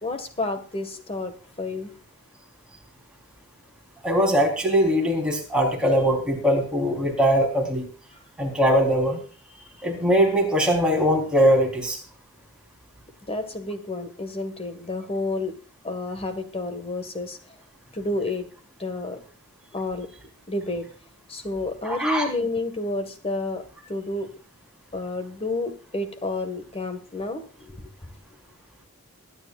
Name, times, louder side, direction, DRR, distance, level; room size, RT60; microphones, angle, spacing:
voice 1, 0.0-1.9 13.3-15.5 15.8-17.4 17.9-18.5 18.8-19.2 19.7-20.1 20.5-20.9 21.3-23.6 23.9-24.3 24.9-27.9, left 2 dB, 25° left, 8 dB, 1.8 m, -30 dB
voice 2, 4.0-7.9 8.4-9.2 9.8-12.0 21.8-22.3, equal, 5° right, -1 dB, 4.0 m, -21 dB
22.5 x 10.0 x 2.5 m, 0.39 s
head